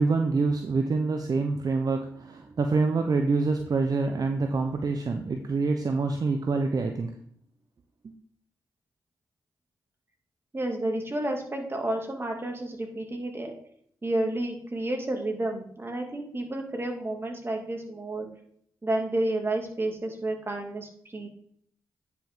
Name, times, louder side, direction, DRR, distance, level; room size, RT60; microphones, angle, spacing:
voice 1, 0.0-7.1 8.0-8.1, right 3 dB, 55° right, 5 dB, 0.8 m, -26 dB
voice 2, 10.5-13.5 14.0-18.3 18.8-21.3, right 1 dB, 30° right, 2 dB, 2.5 m, -30 dB
9.8 x 5.9 x 3.8 m, 0.65 s
supercardioid pair, 45°, 8 cm